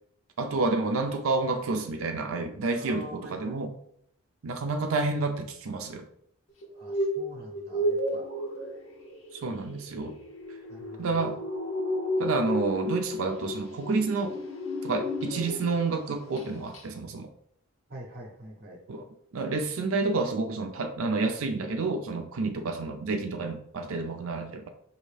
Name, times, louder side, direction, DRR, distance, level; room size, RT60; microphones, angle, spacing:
voice 1, 0.4-3.7 4.4-6.0 9.4-10.2 11.0-11.4 12.2-14.3 14.8-17.3 18.9-19.1 19.3-24.7, right 3 dB, 80° right, 5 dB, 0.5 m, -29 dB
voice 2, 2.8-3.6 6.7-8.2 10.7-11.4 17.9-18.8, right 1 dB, 45° right, 1 dB, 0.8 m, -45 dB
sound 1, 6.6-15.9 16.2-16.5 16.7-16.8, left 1 dB, 65° left, 1.0 m, -33 dB
5.1 x 2.6 x 3.3 m, 0.68 s
head